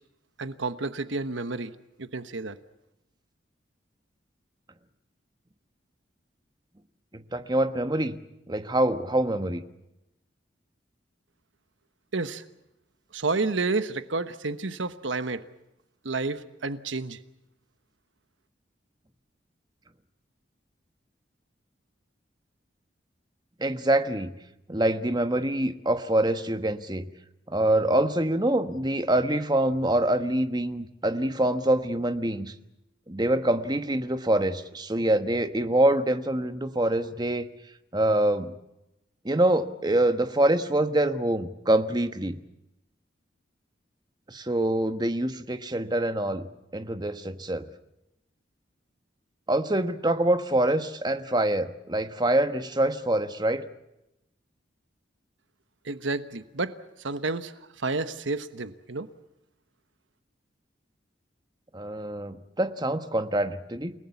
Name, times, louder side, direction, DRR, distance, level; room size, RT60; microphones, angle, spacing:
voice 1, 0.4-1.7 2.0-2.6 12.1-12.4 13.1-15.4 16.0-17.2 55.8-56.7 57.0-59.1, right 3 dB, 90° right, 12 dB, 1.2 m, -30 dB
voice 2, 7.1-8.2 8.5-9.6 23.6-24.3 24.7-27.1 27.5-32.5 33.1-37.5 37.9-38.5 39.2-42.3 44.3-46.5 46.7-47.7 49.5-53.7 61.7-63.9, right 1 dB, 20° right, 9 dB, 1.3 m, -25 dB
29.5 x 18.5 x 7.1 m, 0.88 s
head